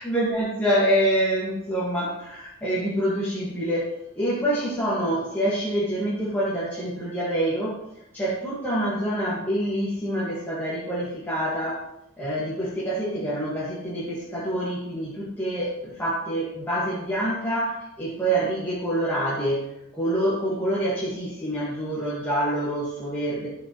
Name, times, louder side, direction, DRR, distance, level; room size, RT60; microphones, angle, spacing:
voice 1, 0.0-7.8 8.1-11.9 12.2-19.7 19.9-23.5, right 1 dB, 10° left, -8 dB, 1.8 m, -26 dB
13.5 x 5.8 x 3.1 m, 0.84 s
head